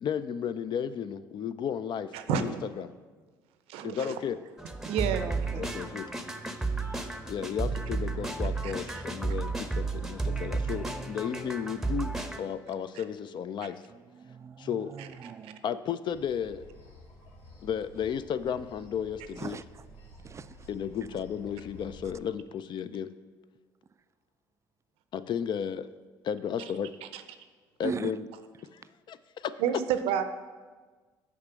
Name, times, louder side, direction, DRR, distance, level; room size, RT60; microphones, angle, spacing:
voice 1, 0.0-2.9 3.8-4.4 5.6-6.1 7.3-13.8 14.6-14.9 15.6-16.7 17.6-19.6 20.7-23.1 25.1-25.9 26.2-26.9 27.8-28.3 28.7-28.8 29.1-29.5, left 8 dB, 50° left, 14 dB, 0.4 m, -33 dB
voice 2, 3.7-4.2 4.9-5.3 8.6-8.7 27.1-27.2 29.6-30.2, right 8 dB, 70° right, 10 dB, 0.6 m, -29 dB
sound 1, 4.6-12.4, right 3 dB, 5° right, 0.8 m, -33 dB
voice 3, 5.2-5.6 6.8-7.3 13.9-15.6 19.4-19.9 20.2-20.7 27.8-28.1, right 6 dB, 30° right, 16 dB, 0.3 m, -40 dB
sound 2, 16.1-22.2, left 1 dB, 80° left, 1.7 m, -51 dB
6.6 x 5.2 x 6.7 m, 1.4 s
hypercardioid pair, 60°, 10 cm